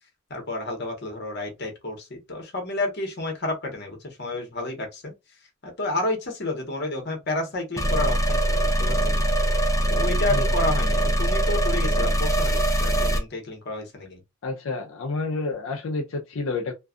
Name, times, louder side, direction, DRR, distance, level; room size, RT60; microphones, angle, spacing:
voice 1, 0.3-5.1 5.6-9.3 9.9-14.2, left 2 dB, 50° left, 0.9 m, -30 dB
sound 1, 7.8-13.2, right 1 dB, 15° left, 0.4 m, -22 dB
voice 2, 10.3-10.6 14.4-16.7, left 3 dB, 65° left, 0.5 m, -29 dB
2.5 x 2.3 x 2.4 m
head